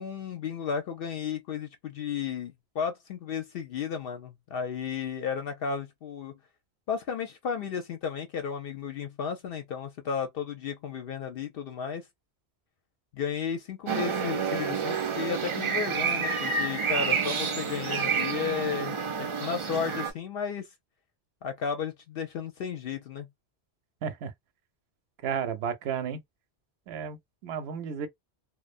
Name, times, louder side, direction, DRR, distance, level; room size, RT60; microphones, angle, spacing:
voice 1, 0.0-6.4 6.9-12.1 13.1-20.7 21.4-23.3, left 7 dB, 65° left, 0.7 m, -33 dB
sound 1, 13.9-20.1, right 5 dB, 45° right, 0.4 m, -29 dB
voice 2, 24.0-24.3 25.2-26.2 26.9-27.2 27.4-28.1, right 7 dB, 75° right, 0.8 m, -32 dB
2.4 x 2.1 x 2.4 m
omnidirectional pair, 1.1 m